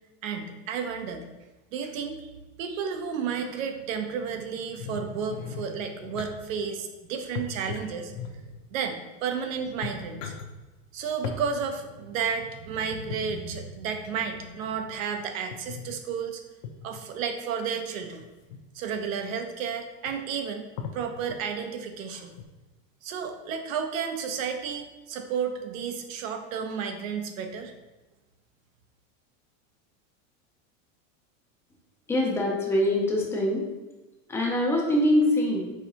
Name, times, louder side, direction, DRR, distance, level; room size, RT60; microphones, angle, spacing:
voice 1, 0.2-1.2 1.7-2.3 2.6-8.1 8.7-10.3 10.9-16.4 16.8-18.2 18.7-22.4 23.0-27.7, right 6 dB, 85° right, 6 dB, 0.7 m, -32 dB
sound 1, 4.8-6.3 7.3-8.6 9.3-9.4 9.7-10.5 11.2-11.4 12.9-13.4 15.5-16.0 16.6-17.0 18.0-18.6 19.3-19.4 19.7-19.8 20.1-20.4 20.8-21.7 22.3-22.4, left 6 dB, 70° left, 0.7 m, -38 dB
voice 2, 32.1-33.7 34.3-35.7, left 1 dB, 5° left, -2 dB, 0.3 m, -24 dB
4.7 x 3.4 x 2.8 m, 1.1 s
supercardioid pair, 145°, 40 cm